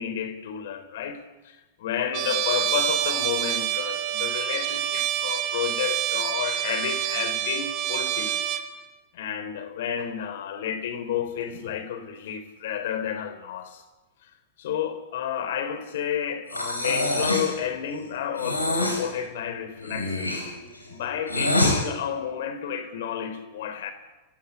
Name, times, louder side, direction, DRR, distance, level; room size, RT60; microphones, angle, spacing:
voice 1, 0.0-8.4 9.1-13.8 14.6-20.3 20.9-23.9, left 8 dB, 55° left, 3.8 m, -31 dB
Trumpet, 2.1-8.7, right 12 dB, 40° right, 2.5 m, -27 dB
Breathing, 16.5-17.6 18.4-19.0 19.8-21.8, left 1 dB, 85° left, 6.5 m, -25 dB
29.5 x 16.0 x 9.8 m
figure-of-eight pair, 90°, 0 cm